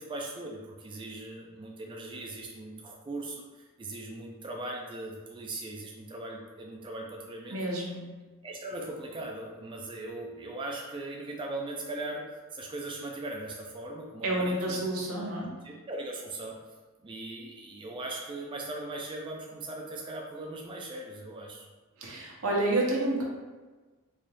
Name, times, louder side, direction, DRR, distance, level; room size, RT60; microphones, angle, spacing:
voice 1, 0.0-7.6 8.4-12.2 12.5-14.8 15.6-16.6 17.0-21.6, right 2 dB, 25° right, -1 dB, 0.4 m, -39 dB
voice 2, 7.5-8.0 14.2-15.5 22.0-23.2, right 1 dB, 80° right, -2 dB, 0.9 m, -29 dB
4.0 x 2.3 x 3.3 m, 1.3 s
head